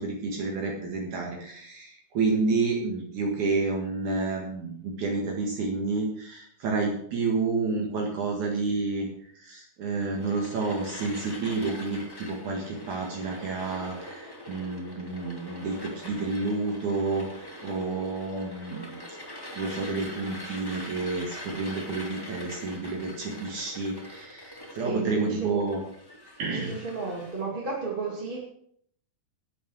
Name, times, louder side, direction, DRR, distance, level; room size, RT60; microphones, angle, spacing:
voice 1, 0.0-19.2 19.6-25.8 26.4-26.8, right 3 dB, 65° right, 0 dB, 3.1 m, -30 dB
sound 1, 10.1-27.4, left 1 dB, 10° left, 1.5 m, -43 dB
voice 2, 24.7-25.5 26.5-28.4, right 4 dB, 20° right, -3 dB, 1.9 m, -33 dB
12.0 x 8.9 x 6.2 m, 0.66 s
omnidirectional pair, 3.8 m